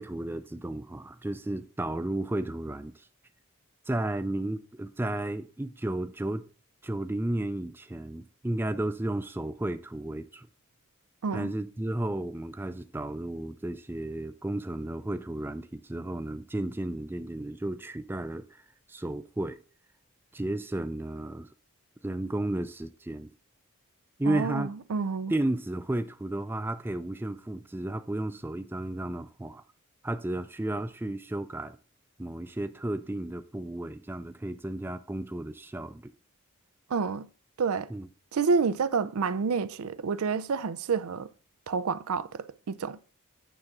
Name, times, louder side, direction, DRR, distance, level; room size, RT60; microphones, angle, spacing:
voice 1, 0.0-3.1 3.9-6.5 6.8-10.5 11.3-18.6 18.9-19.6 20.3-21.5 22.0-23.3 24.2-24.7 25.3-29.6 30.0-31.8 32.2-36.1 37.9-38.1, right 1 dB, 10° right, 0.3 m, -33 dB
voice 2, 24.3-25.3 36.9-37.3 37.6-37.9 38.3-41.3 41.7-43.0, right 5 dB, 75° right, 0.5 m, -29 dB
9.1 x 3.7 x 5.9 m
head